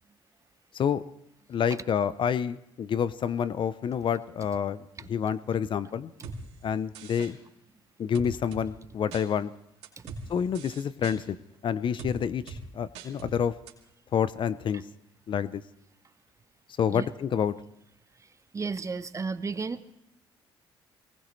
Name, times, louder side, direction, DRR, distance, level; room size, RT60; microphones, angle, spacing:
voice 1, 1.5-6.1 6.6-7.4 8.0-9.5 10.3-11.4 11.6-13.5 14.1-14.8 15.3-15.6 16.8-17.5, left 8 dB, 50° left, 16 dB, 0.7 m, -28 dB
sound 1, 6.2-6.4 6.9-7.3 8.1-8.6 9.1-9.2 9.8-10.2 10.5-11.2 12.0-12.1 12.5-12.6 12.9-13.3 13.7-13.8, right 4 dB, 80° right, 2.7 m, -40 dB
voice 2, 18.5-19.8, right 4 dB, 30° right, 12 dB, 0.9 m, -32 dB
23.5 x 18.5 x 3.2 m, 0.84 s
supercardioid pair, 80°, 11 cm